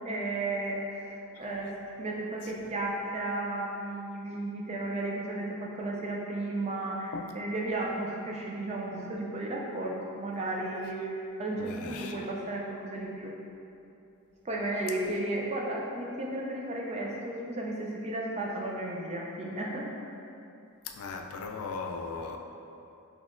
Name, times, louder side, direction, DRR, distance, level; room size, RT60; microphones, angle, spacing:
voice 1, 0.0-13.3 14.4-19.9, right 2 dB, 30° right, -2 dB, 0.3 m, -34 dB
voice 2, 11.6-12.3 20.8-22.4, left 4 dB, 85° left, 3 dB, 0.3 m, -38 dB
4.1 x 2.9 x 2.4 m, 2.7 s
head